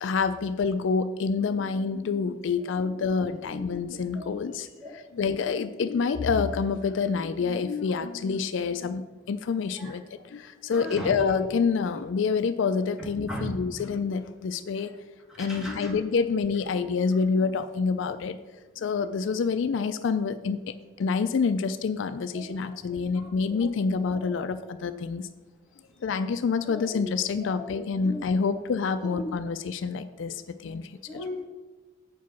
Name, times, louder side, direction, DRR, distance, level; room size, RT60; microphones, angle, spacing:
voice 1, 0.0-14.9 15.4-18.4 18.8-25.3 26.0-31.0, left 5 dB, 65° left, 11 dB, 0.4 m, -27 dB
voice 2, 10.7-11.3 13.0-13.5 15.3-15.9 22.3-22.6 23.6-23.7 24.1-24.3 26.6-27.0 27.4-27.7 28.0-28.2 29.1-29.3 31.1-31.5, left 1 dB, 5° right, -3 dB, 1.6 m, -37 dB
8.1 x 4.7 x 5.9 m, 1.3 s
head